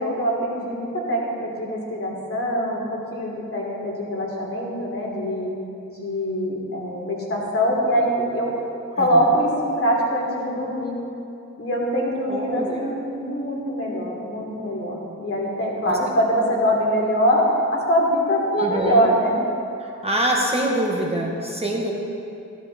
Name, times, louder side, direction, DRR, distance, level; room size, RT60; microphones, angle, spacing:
voice 1, 0.0-5.5 6.0-8.5 8.9-10.9 11.6-19.3, equal, 45° left, -3 dB, 3.1 m, -23 dB
voice 2, 12.3-12.9 15.8-16.0 18.5-19.0 19.8-21.9, right 1 dB, 20° right, -1 dB, 1.3 m, -25 dB
15.5 x 13.0 x 4.1 m, 2.7 s
wide cardioid pair, 150°, 30 cm